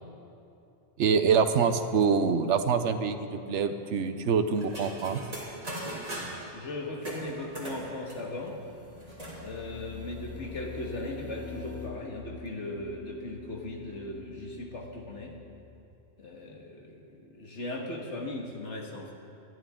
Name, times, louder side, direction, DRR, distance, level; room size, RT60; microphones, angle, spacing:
voice 1, 1.0-5.2, right 6 dB, 80° right, 9 dB, 1.1 m, -25 dB
sound 1, 4.5-6.5 7.0-9.4 9.8-9.9 10.1-10.7, right 1 dB, 35° right, 3.0 m, -40 dB
voice 2, 6.5-8.7 9.4-15.3 16.2-19.1, left 1 dB, 80° left, 0 dB, 2.1 m, -38 dB
sound 2, 8.3-15.8, left 6 dB, 15° left, 0.8 m, -46 dB
26.0 x 11.0 x 3.8 m, 2.8 s
omnidirectional pair, 1.2 m